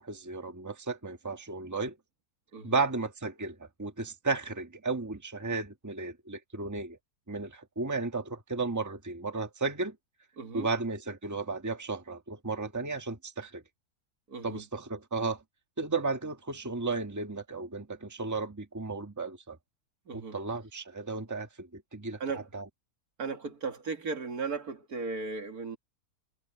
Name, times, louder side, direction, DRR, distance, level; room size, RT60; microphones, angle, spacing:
voice 1, 0.0-2.0 2.6-7.0 7.3-9.9 10.5-13.6 14.4-15.4 15.8-19.6 20.1-22.6, right 3 dB, 10° right, 1.5 m, -34 dB
voice 2, 10.4-10.7 14.3-14.6 20.1-20.4 22.2-22.5 23.2-25.8, right 4 dB, 75° right, 2.4 m, -36 dB
omnidirectional pair, 1.6 m